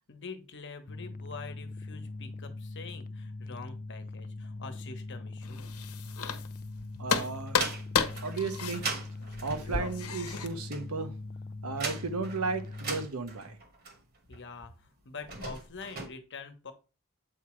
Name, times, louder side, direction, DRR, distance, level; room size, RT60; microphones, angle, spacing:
voice 1, 0.1-5.6 14.3-16.7, left 4 dB, 55° left, 1.1 m, -45 dB
sound 1, 0.9-13.1, left 2 dB, 40° left, 0.3 m, -41 dB
sound 2, 5.4-6.7 7.1-10.5, left 6 dB, 80° left, 1.0 m, -32 dB
sound 3, 6.1-6.9 7.3-14.4 15.1-16.1, right 4 dB, 45° right, 1.4 m, -40 dB
voice 2, 7.0-7.6 8.2-9.0 9.4-11.2 11.6-13.6, right 4 dB, 75° right, 1.0 m, -34 dB
7.9 x 4.8 x 3.2 m
head